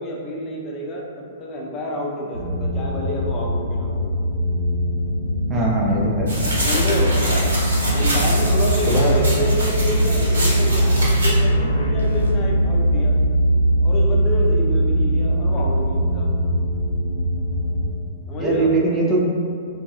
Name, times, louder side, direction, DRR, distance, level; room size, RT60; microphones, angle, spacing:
voice 1, 0.0-4.1 6.6-7.2 7.9-13.1 13.8-16.3 18.3-18.8, equal, 25° left, -2 dB, 0.6 m, -28 dB
sound 1, 2.3-17.9, equal, 40° right, 1.3 m, -21 dB
voice 2, 5.5-6.3 8.9-9.2 18.4-19.2, right 2 dB, 15° right, -4 dB, 0.6 m, -20 dB
sound 2, 6.3-11.3, right 1 dB, 75° right, 1.0 m, -26 dB
sound 3, 6.4-12.3, left 1 dB, 90° left, 0.5 m, -30 dB
3.9 x 2.4 x 2.3 m, 2.3 s
hypercardioid pair, 115°, 0 cm